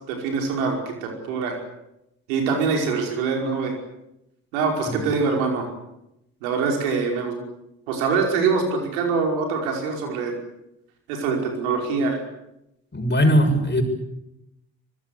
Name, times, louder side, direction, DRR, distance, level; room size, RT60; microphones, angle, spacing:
voice 1, 0.1-1.6 2.3-3.8 4.5-5.7 6.4-7.4 7.9-10.3 11.1-12.2, right 4 dB, 80° right, 2 dB, 5.3 m, -24 dB
voice 2, 12.9-13.8, equal, 25° left, 6 dB, 6.5 m, -19 dB
24.5 x 21.5 x 8.2 m, 0.88 s
hypercardioid pair, 50°, 41 cm